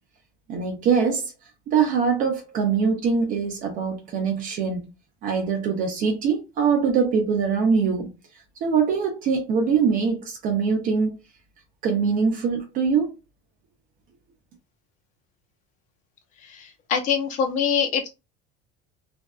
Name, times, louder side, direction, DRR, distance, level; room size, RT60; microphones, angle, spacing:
voice 1, 0.5-1.3 1.7-4.9 5.2-8.1 8.6-11.2 11.8-13.1, right 6 dB, 45° right, 0.6 m, -23 dB
voice 2, 16.4-18.1, left 7 dB, 40° left, 0.6 m, -24 dB
2.6 x 2.2 x 2.2 m
cardioid pair, 170°, 19 cm